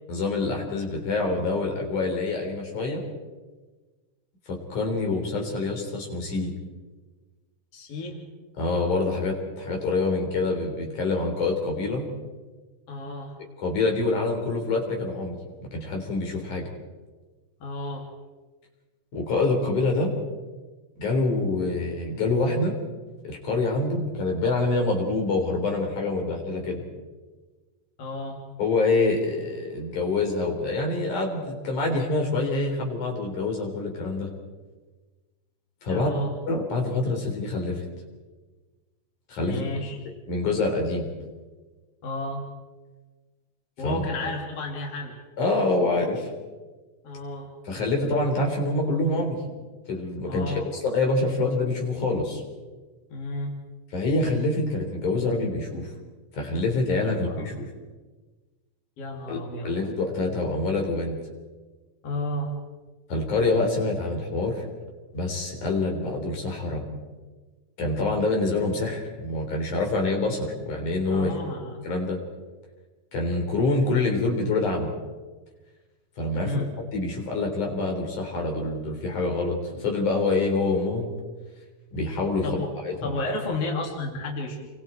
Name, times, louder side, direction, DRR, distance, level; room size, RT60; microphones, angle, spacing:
voice 1, 0.1-3.0 4.5-6.5 8.6-12.1 13.6-15.4 15.7-16.7 19.1-20.1 21.0-22.7 23.2-26.8 28.6-34.3 35.8-36.1 36.5-37.8 39.3-39.7 40.3-41.1 43.8-44.0 45.4-46.3 47.7-49.4 49.9-52.4 53.9-55.9 56.3-57.7 59.3-61.2 63.1-64.7 65.1-66.8 67.8-71.3 71.8-72.2 73.1-74.9 76.2-76.6 76.9-81.1 81.9-83.2, left 3 dB, 75° left, 1 dB, 5.3 m, -26 dB
voice 2, 7.7-8.2 12.9-13.4 17.6-18.1 28.0-28.4 35.9-36.3 39.4-40.0 42.0-42.5 43.8-45.2 47.0-47.5 50.3-50.7 53.1-53.5 57.0-57.5 59.0-59.7 62.0-62.5 71.1-71.8 76.3-76.7 82.4-82.7 83.0-84.7, left 2 dB, 50° left, 0 dB, 3.7 m, -32 dB
29.0 x 23.5 x 4.5 m, 1.3 s
omnidirectional pair, 3.5 m